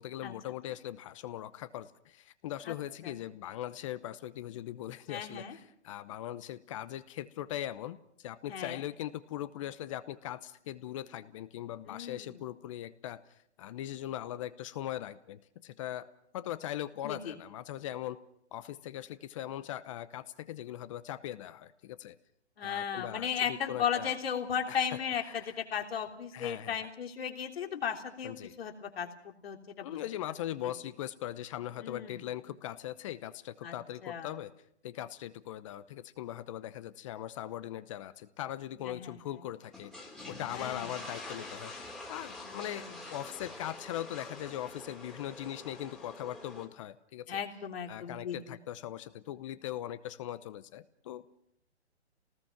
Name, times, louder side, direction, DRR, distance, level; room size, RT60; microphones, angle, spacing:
voice 1, 0.0-13.2 13.6-16.1 16.3-18.2 18.5-22.2 22.6-24.1 24.7-25.5 26.3-26.9 28.2-28.5 29.8-34.5 34.8-39.9 40.3-41.7 42.1-47.4 47.9-51.3, left 12 dB, 30° left, 14 dB, 0.8 m, -40 dB
voice 2, 5.1-5.5 8.5-8.8 11.8-12.3 17.0-17.3 22.6-29.1 29.4-29.9 31.8-32.2 33.6-33.7 34.0-34.3 38.8-39.1 40.5-40.9 42.5-42.9 47.3-48.4, left 8 dB, 60° left, 3 dB, 3.4 m, -35 dB
sound 1, 39.6-46.7, left 2 dB, ahead, 2.8 m, -46 dB
28.0 x 19.0 x 5.9 m, 0.73 s
hypercardioid pair, 140°, 34 cm